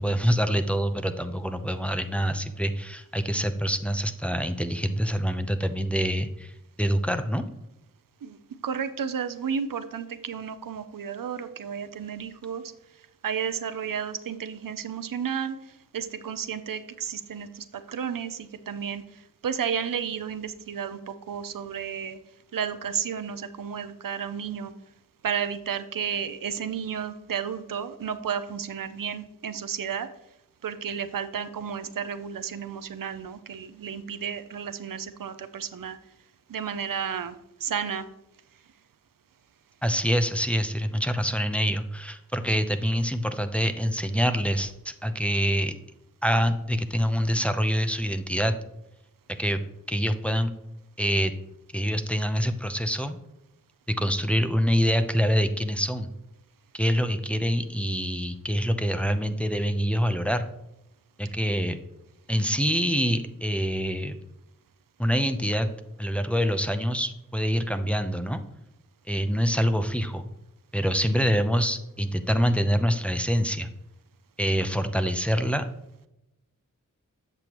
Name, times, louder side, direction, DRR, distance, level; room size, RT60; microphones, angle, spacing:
voice 1, 0.0-6.5 6.8-7.4 39.8-45.7 46.2-48.5 49.4-49.6 49.9-50.5 51.0-51.3 51.7-53.2 53.9-56.1 56.7-60.4 61.2-61.8 62.3-64.2 65.0-65.7 66.0-68.4 69.1-70.3 70.7-73.7 74.4-75.6, equal, 5° left, 8 dB, 0.6 m, -25 dB
voice 2, 8.2-12.6 13.2-15.6 15.9-22.2 22.5-24.7 25.2-30.1 30.6-36.0 36.5-37.3 37.6-38.1, right 7 dB, 85° right, 10 dB, 0.6 m, -32 dB
8.0 x 6.9 x 3.0 m, 0.86 s
wide cardioid pair, 50°, 32 cm